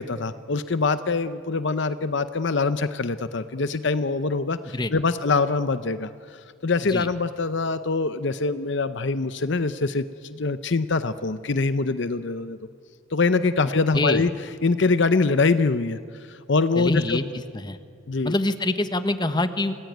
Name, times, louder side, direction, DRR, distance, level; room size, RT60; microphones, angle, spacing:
voice 1, 0.0-12.6 13.1-14.3 14.6-17.2 18.1-18.3, left 3 dB, 55° left, 12 dB, 0.7 m, -24 dB
voice 2, 16.8-17.2 17.5-17.8 18.2-19.7, left 2 dB, 20° left, 10 dB, 1.1 m, -25 dB
28.0 x 19.0 x 9.3 m, 2.3 s
head